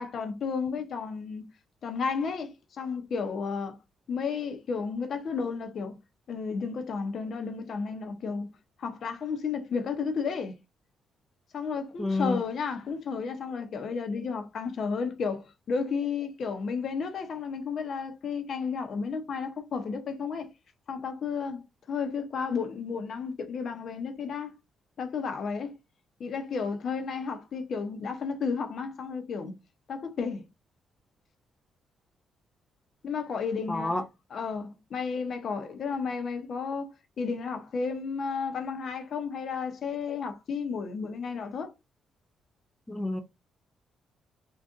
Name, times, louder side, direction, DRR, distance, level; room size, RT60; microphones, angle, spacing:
voice 1, 0.0-1.5 1.8-3.8 4.1-6.0 6.3-8.5 8.8-10.5 11.5-20.5 20.9-21.6 21.9-24.5 25.0-25.8 26.2-29.5 29.9-30.5 33.0-33.9 34.3-36.9 37.2-41.7, left 5 dB, 60° left, 0.8 m, -32 dB
voice 2, 12.0-12.4 33.7-34.0 42.9-43.2, left 2 dB, 10° left, 0.4 m, -28 dB
3.7 x 2.5 x 2.6 m
cardioid pair, 90°, 0 cm